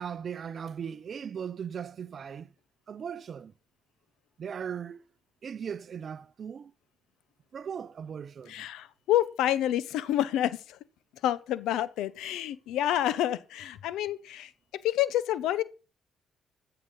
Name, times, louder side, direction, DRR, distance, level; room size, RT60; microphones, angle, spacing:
voice 1, 0.0-2.5 2.9-3.5 4.4-5.0 5.4-6.7 7.5-8.7, right 7 dB, 50° right, 0.6 m, -38 dB
voice 2, 8.5-10.8 11.2-14.5 14.8-15.6, left 12 dB, 90° left, 0.9 m, -28 dB
14.5 x 6.8 x 5.4 m
cardioid pair, 90°, 0 cm